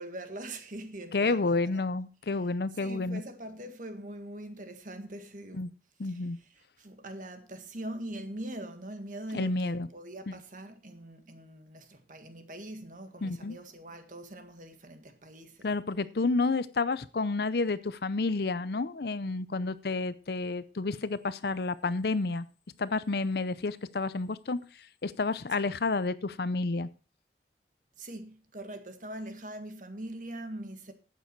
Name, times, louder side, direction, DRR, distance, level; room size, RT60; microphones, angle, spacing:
voice 1, 0.0-1.8 2.7-5.6 6.0-15.7 28.0-30.9, right 1 dB, 45° right, 1.8 m, -42 dB
voice 2, 1.1-3.2 5.5-5.7 6.0-6.4 9.3-9.9 13.2-13.6 15.6-22.4 22.8-24.6 25.0-26.9, left 3 dB, 60° left, 0.6 m, -30 dB
12.0 x 9.0 x 4.6 m
head